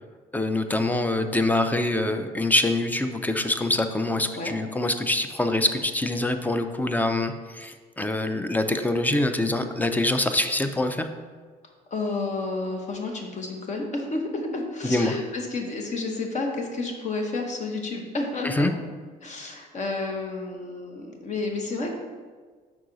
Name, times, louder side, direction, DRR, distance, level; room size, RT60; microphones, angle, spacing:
voice 1, 0.3-11.1 14.8-15.1 18.4-18.7, left 2 dB, 10° left, 8 dB, 0.4 m, -25 dB
voice 2, 11.9-18.7 19.2-21.9, left 3 dB, 45° left, 2 dB, 0.9 m, -30 dB
6.1 x 4.7 x 3.9 m, 1.5 s
cardioid pair, 110°, 17 cm